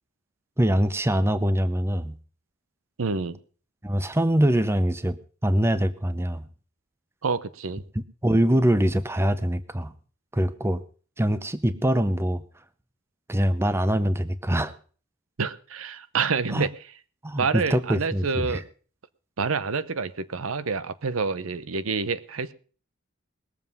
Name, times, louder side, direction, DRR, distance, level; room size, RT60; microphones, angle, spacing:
voice 1, 0.6-2.2 3.8-6.4 8.2-9.9 10.3-10.8 11.2-12.4 13.3-14.7 16.5-16.7 17.2-18.6, equal, 10° right, 13 dB, 0.7 m, -23 dB
voice 2, 3.0-3.4 7.2-7.8 15.4-16.7 17.4-18.6 19.4-22.5, right 5 dB, 80° right, 15 dB, 0.7 m, -27 dB
20.0 x 7.4 x 5.4 m, 0.40 s
head